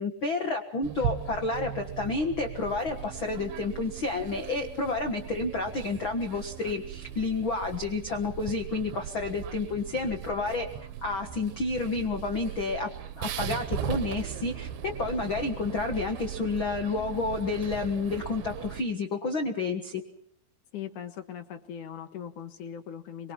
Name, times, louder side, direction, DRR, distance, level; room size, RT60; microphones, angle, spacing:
voice 1, 0.0-10.7 11.0-12.9 13.2-14.7 15.0-20.0, left 3 dB, 80° left, 5 dB, 1.1 m, -30 dB
sound 1, 0.8-18.8, right 10 dB, 70° right, 2.7 m, -38 dB
voice 2, 20.7-23.3, left 9 dB, 60° left, 8 dB, 2.4 m, -40 dB
24.5 x 23.5 x 5.7 m, 0.70 s
omnidirectional pair, 5.0 m